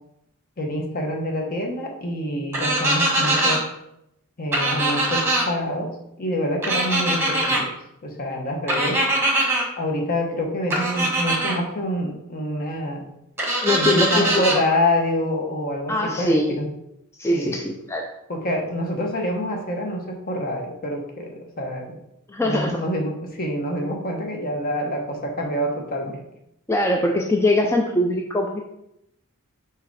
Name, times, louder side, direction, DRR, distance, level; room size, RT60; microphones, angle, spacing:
voice 1, 0.6-3.6 4.4-5.9 6.2-7.7 8.0-9.0 9.8-13.0 13.8-16.7 17.3-17.6 18.3-22.0 22.4-26.2, left 1 dB, 40° left, 2 dB, 1.1 m, -26 dB
sound 1, 2.5-3.6 4.5-5.4 6.6-7.6 8.7-9.6 10.7-11.5 13.4-14.6, right 1 dB, 10° right, 1.2 m, -22 dB
voice 2, 13.6-14.3 15.9-16.6 17.2-18.1 22.3-22.8 26.7-28.6, left 1 dB, 10° left, 1 dB, 0.4 m, -22 dB
4.8 x 4.1 x 4.7 m, 0.81 s
head